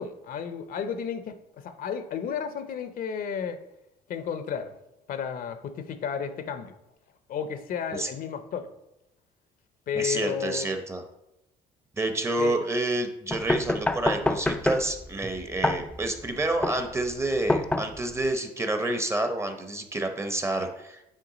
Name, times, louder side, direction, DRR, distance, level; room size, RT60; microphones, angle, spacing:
voice 1, 0.0-3.6 4.1-4.7 5.1-6.7 7.3-8.7 9.9-10.7 12.4-12.6, left 7 dB, 55° left, 10 dB, 0.6 m, -32 dB
voice 2, 9.9-11.0 12.0-21.0, right 2 dB, 15° right, 6 dB, 0.7 m, -28 dB
sound 1, 13.3-18.3, left 2 dB, 5° left, 0.3 m, -28 dB
9.0 x 3.3 x 4.0 m, 0.88 s
cardioid pair, 110°, 17 cm